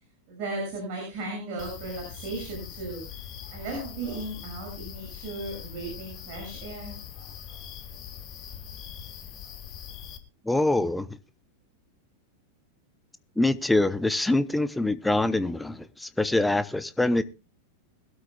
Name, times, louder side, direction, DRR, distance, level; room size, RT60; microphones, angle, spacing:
voice 1, 0.3-7.6, right 2 dB, 45° right, 6.6 m, -36 dB
sound 1, 1.6-10.2, left 8 dB, 35° left, 1.5 m, -42 dB
voice 2, 10.4-11.1 13.4-17.2, left 2 dB, 5° left, 0.8 m, -24 dB
22.0 x 12.5 x 2.3 m
figure-of-eight pair, 90°, 0 cm